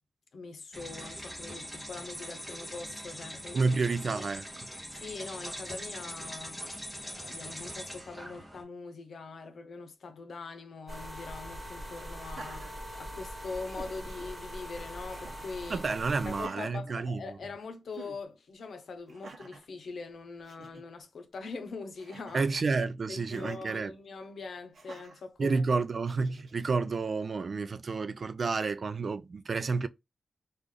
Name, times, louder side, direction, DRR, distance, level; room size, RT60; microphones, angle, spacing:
voice 1, 0.3-3.7 4.1-4.2 4.9-6.6 7.0-15.9 16.3-22.4 23.1-25.6, left 4 dB, 75° left, 0.8 m, -42 dB
sound 1, 0.7-8.6, equal, ahead, 1.1 m, -42 dB
voice 2, 3.5-4.7 15.7-17.4 22.3-23.9 25.4-29.9, right 4 dB, 45° right, 0.3 m, -30 dB
sound 2, 10.9-16.5, equal, 20° right, 1.7 m, -42 dB
Laughter, 12.1-13.3 13.6-14.3 15.1-15.6 16.3-17.5 17.9-18.2 19.1-19.7 20.2-20.3 20.4-20.8 22.0-22.6 23.3-23.6 24.7-25.2 26.0-26.6, right 3 dB, 60° right, 0.8 m, -49 dB
3.2 x 2.5 x 3.7 m
wide cardioid pair, 175°, 0 cm